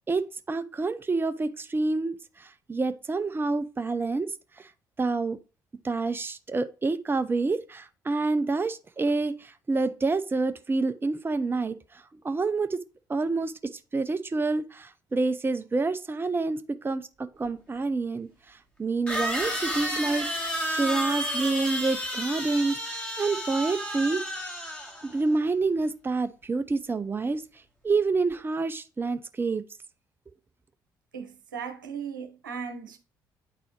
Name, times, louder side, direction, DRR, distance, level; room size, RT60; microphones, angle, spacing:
voice 1, 0.1-4.3 4.6-4.7 5.0-5.4 5.8-11.7 12.2-12.8 13.1-13.5 13.9-18.3 18.8-20.3 20.7-24.2 25.1-27.4 27.8-29.6, right 3 dB, 20° right, 0.6 m, -28 dB
sound 1, 17.4-17.5 19.1-25.2, equal, 15° left, 2.6 m, -31 dB
voice 2, 31.1-33.0, right 6 dB, 85° right, 0.9 m, -37 dB
9.0 x 4.1 x 3.0 m
hypercardioid pair, 50°, 10 cm